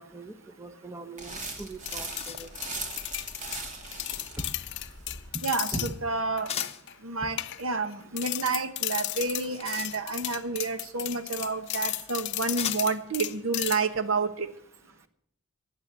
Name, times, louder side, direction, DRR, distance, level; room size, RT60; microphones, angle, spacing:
voice 1, 0.0-2.5 4.4-4.5 5.3-5.4 5.7-6.0, right 1 dB, 15° right, 9 dB, 0.9 m, -40 dB
sound 1, 1.2-5.3, right 2 dB, 35° right, 2.6 m, -39 dB
sound 2, 1.3-1.4 1.7-2.7 6.5-6.9 9.2-10.4 11.5-11.6 12.6-13.1, left 8 dB, 30° left, 0.9 m, -38 dB
sound 3, 1.9-5.9 6.4-6.9 7.4-7.9 8.2-14.0, left 16 dB, 55° left, 0.5 m, -34 dB
voice 2, 5.4-6.5 7.0-14.5, right 4 dB, 75° right, 11 dB, 1.2 m, -30 dB
15.5 x 9.6 x 7.4 m, 0.69 s
head